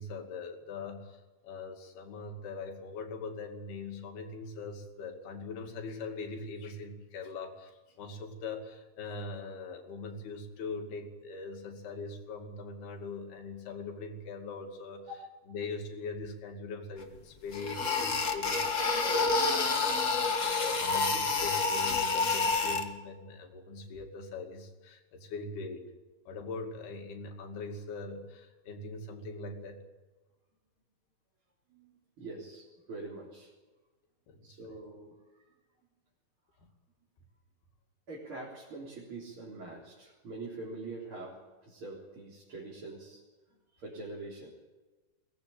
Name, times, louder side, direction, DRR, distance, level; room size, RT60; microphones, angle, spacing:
voice 1, 0.0-15.1 15.5-19.5 19.8-25.9 26.3-29.8 34.3-34.6, left 3 dB, 90° left, 3 dB, 4.4 m, -42 dB
sound 1, 17.0-17.1 17.5-22.8, left 4 dB, 70° left, 0.7 m, -28 dB
voice 2, 31.7-33.5 34.4-35.1 38.1-43.2 43.7-44.5, right 2 dB, 35° right, -5 dB, 4.3 m, -44 dB
22.5 x 19.0 x 8.7 m, 1.2 s
omnidirectional pair, 4.4 m